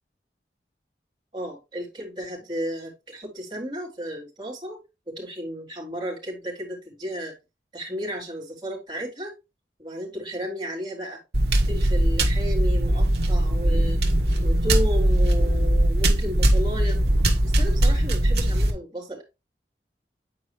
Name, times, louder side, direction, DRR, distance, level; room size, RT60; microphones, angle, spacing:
voice 1, 1.3-4.8 5.1-7.3 7.7-9.3 9.8-11.2 11.6-14.0 14.4-17.0 17.4-19.2, equal, 25° right, -5 dB, 3.7 m, -33 dB
sound 1, 11.3-18.7, right 1 dB, 70° right, 1.5 m, -20 dB
9.1 x 4.7 x 3.3 m, 0.25 s
head